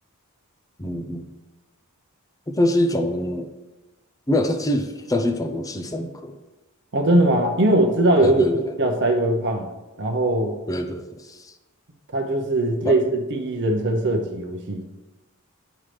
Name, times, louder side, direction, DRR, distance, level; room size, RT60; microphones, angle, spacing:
voice 1, 0.8-1.3 2.5-3.5 4.3-6.4 8.2-8.7 10.7-11.5 12.8-13.0, left 1 dB, 15° left, 6 dB, 0.5 m, -25 dB
voice 2, 6.9-8.4 8.8-9.7 10.0-10.5 12.1-13.0 13.3-14.8, right 1 dB, 50° right, 1 dB, 0.8 m, -20 dB
8.9 x 5.6 x 3.3 m, 1.1 s
head